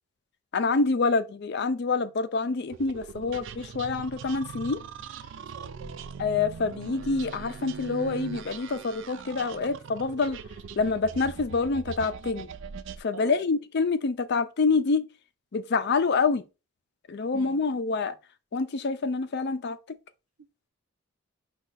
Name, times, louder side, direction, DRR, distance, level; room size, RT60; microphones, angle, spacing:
voice 1, 0.5-4.8 6.2-10.4 10.8-12.5 13.0-15.1 15.5-16.4 17.1-18.1 18.5-20.0, left 4 dB, 50° left, 0.4 m, -27 dB
sound 1, 2.7-13.0, right 6 dB, 55° right, 0.3 m, -41 dB
voice 2, 5.4-6.0 13.1-13.4 17.3-17.6, right 5 dB, 75° right, 0.7 m, -44 dB
5.4 x 2.3 x 4.0 m
head